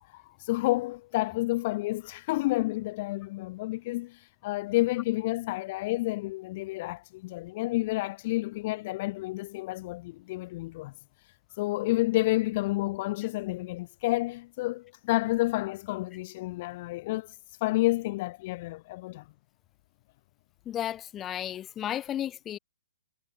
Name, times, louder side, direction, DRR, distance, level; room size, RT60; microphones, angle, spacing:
voice 1, 0.0-10.9 11.6-17.3 17.6-19.2, left 19 dB, 25° left, 3.1 m, -30 dB
voice 2, 20.6-22.6, left 11 dB, 10° left, 3.2 m, -33 dB
hypercardioid pair, 170°, 0 cm